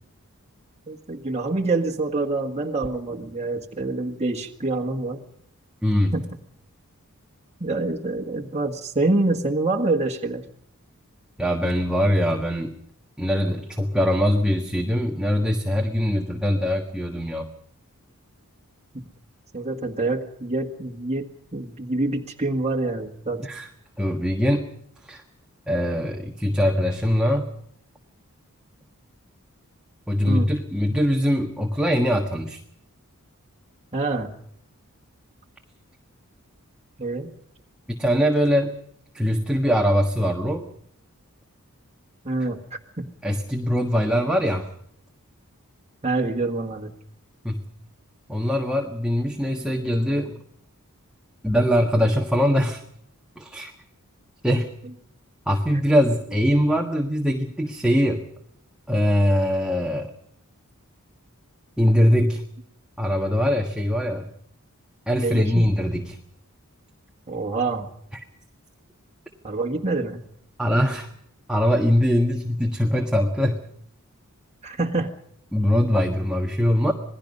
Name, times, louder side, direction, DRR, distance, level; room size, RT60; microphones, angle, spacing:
voice 1, 0.9-5.2 6.1-6.2 7.6-10.4 18.9-19.0 19.5-23.5 30.2-30.5 33.9-34.3 37.0-37.3 42.2-42.6 43.0-43.1 44.1-44.2 46.0-46.9 65.2-65.7 67.3-67.9 69.4-70.2 74.6-75.1, right 2 dB, 30° right, 1 dB, 1.6 m, -26 dB
voice 2, 5.8-6.1 11.4-12.7 13.2-17.5 23.4-23.7 24.0-24.7 25.0-25.2 25.7-27.5 30.1-32.6 37.9-38.7 39.1-40.7 43.2-44.7 47.4-47.6 48.3-50.4 51.4-52.8 53.4-53.7 54.4-54.7 55.5-58.2 58.9-60.1 61.8-62.4 63.0-64.3 65.1-66.2 68.1-68.2 70.6-71.1 71.5-73.6 75.5-76.9, equal, 5° right, 1 dB, 1.5 m, -22 dB
27.0 x 19.5 x 5.4 m, 0.68 s
head